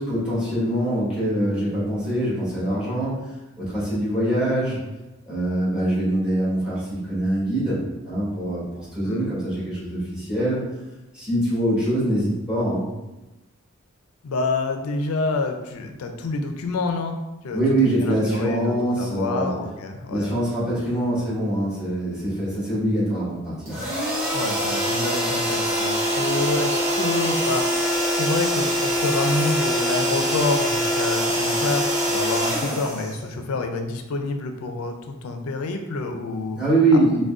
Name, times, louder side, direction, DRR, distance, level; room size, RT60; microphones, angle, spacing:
voice 1, 0.0-3.2 3.6-4.8 5.3-7.8 8.0-10.6 11.1-12.9 17.5-19.5 20.1-23.8 36.6-37.3, right 1 dB, 5° right, -9 dB, 1.3 m, -23 dB
voice 2, 14.2-17.2 17.4-20.4 24.3-27.6 28.1-36.6, left 3 dB, 85° left, 5 dB, 0.4 m, -28 dB
sound 1, 23.7-33.6, equal, 30° right, 1.2 m, -24 dB
3.5 x 2.2 x 2.4 m, 1.0 s
head